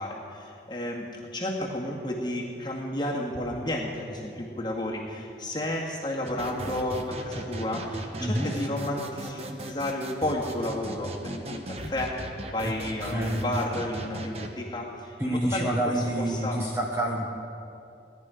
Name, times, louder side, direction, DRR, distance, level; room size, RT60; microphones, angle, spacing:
voice 1, 0.0-16.6, left 1 dB, 25° left, -2 dB, 1.9 m, -32 dB
sound 1, 6.3-14.5, right 1 dB, 35° right, 0.9 m, -38 dB
voice 2, 13.0-13.4 15.2-17.3, right 1 dB, 15° right, -1 dB, 1.0 m, -28 dB
17.5 x 10.5 x 5.0 m, 2.5 s
head